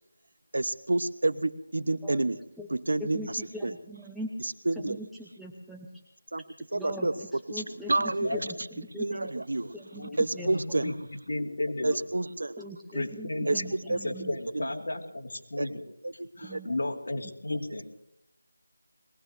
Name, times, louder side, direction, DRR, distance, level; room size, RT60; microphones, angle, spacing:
voice 1, 0.5-2.4 2.7-3.7 4.7-5.0 6.3-6.4 6.7-7.1 7.5-7.6 7.9-8.3 8.9-9.7 10.2-10.9 11.8-12.6 13.5-13.6 13.9-14.0 14.5-14.7 15.6-15.7 16.0-16.6, right 2 dB, 65° right, 14 dB, 1.0 m, -29 dB
voice 2, 3.0-4.3 4.7-5.9 6.7-9.3 9.7-10.9 12.6-14.3 16.4-16.7, equal, ahead, -4 dB, 0.7 m, -41 dB
voice 3, 8.0-8.4 9.9-10.9 11.3-12.0 12.9-15.8 16.4-17.9, left 1 dB, 50° left, 0 dB, 2.8 m, -34 dB
22.0 x 18.0 x 3.3 m, 0.84 s
figure-of-eight pair, 175°, 0 cm